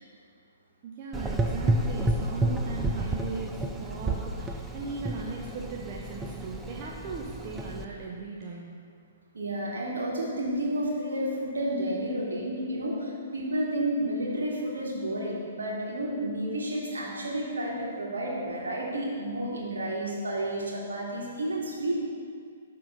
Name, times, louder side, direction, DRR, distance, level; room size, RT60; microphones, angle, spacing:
voice 1, 0.8-8.8, right 4 dB, 35° right, -2 dB, 0.8 m, -38 dB
Gurgling / Engine, 1.1-7.8, right 1 dB, 10° right, 0.5 m, -31 dB
voice 2, 9.3-22.0, right 1 dB, 65° right, -4 dB, 2.2 m, -31 dB
11.5 x 3.9 x 5.6 m, 2.2 s
figure-of-eight pair, 120°, 0 cm